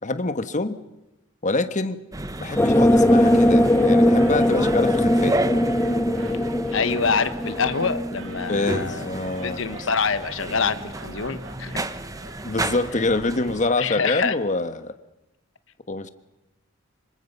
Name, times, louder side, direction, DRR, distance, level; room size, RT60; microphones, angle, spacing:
voice 1, 0.0-0.8 1.4-2.0 2.4-5.4 8.5-9.6 12.4-14.9 15.9-16.1, left 2 dB, 40° left, 10 dB, 1.4 m, -26 dB
sound 1, 2.1-13.7, right 2 dB, 15° right, 1.1 m, -33 dB
sound 2, 2.6-8.9, left 1 dB, 10° left, 0.8 m, -20 dB
sound 3, 2.9-14.0, right 3 dB, 70° right, 2.6 m, -45 dB
voice 2, 6.7-9.1 9.4-11.7 12.9-13.0 13.8-14.3, left 5 dB, 70° left, 11 dB, 1.1 m, -25 dB
27.0 x 24.5 x 5.5 m, 0.95 s
head